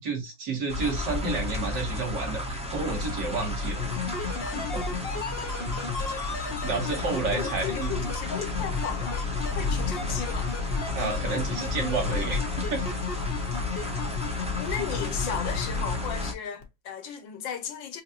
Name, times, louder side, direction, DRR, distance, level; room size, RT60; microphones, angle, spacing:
voice 1, 0.0-3.9 4.5-4.9 6.6-8.1 10.1-10.2 10.9-12.4 12.7-12.8, right 4 dB, 70° right, 2.3 m, -30 dB
sound 1, 0.7-16.3, left 2 dB, 5° right, 0.9 m, -32 dB
sound 2, 3.8-16.3 16.6-16.7, left 6 dB, 50° left, 0.7 m, -34 dB
voice 2, 7.3-9.2 9.5-10.5 14.6-18.0, left 8 dB, 85° left, 1.7 m, -35 dB
5.1 x 2.5 x 2.6 m
omnidirectional pair, 2.0 m